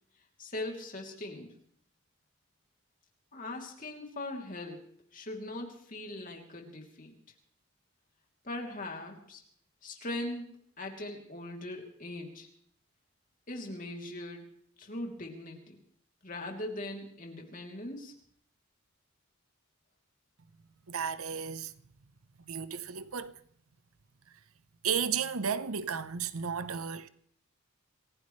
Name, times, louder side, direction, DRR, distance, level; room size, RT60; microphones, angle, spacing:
voice 1, 0.4-1.5 3.3-4.8 5.1-7.2 8.4-9.4 9.8-10.5 10.8-12.5 13.5-15.8 16.2-18.1, left 1 dB, 40° left, 3.0 m, -40 dB
voice 2, 20.9-21.7 22.5-23.3 24.8-27.1, right 6 dB, 80° right, 0.8 m, -33 dB
27.0 x 16.0 x 3.2 m
head